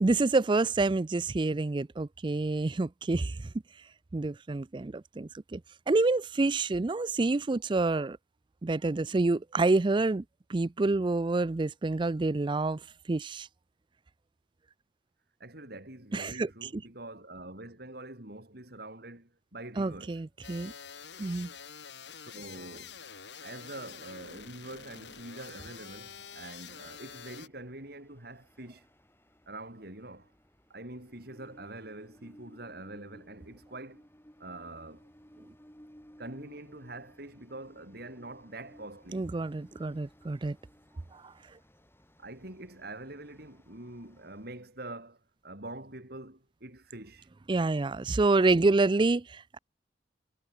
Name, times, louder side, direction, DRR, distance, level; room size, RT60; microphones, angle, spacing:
voice 1, 0.0-3.5 4.1-5.6 5.9-8.2 8.6-10.2 10.5-12.8 13.1-13.5 16.1-16.7 19.8-20.7 21.2-21.5 39.1-40.6 41.1-41.3 47.5-49.6, right 3 dB, 25° right, 0.4 m, -28 dB
voice 2, 15.4-20.2 22.2-23.0 23.4-28.9 29.5-30.3 30.7-34.0 34.4-35.1 36.2-39.3 42.2-47.3, right 2 dB, 60° right, 4.9 m, -45 dB
sound 1, 20.4-27.5, left 7 dB, 75° left, 4.2 m, -47 dB
Train, 25.2-44.7, equal, 15° left, 7.5 m, -59 dB
head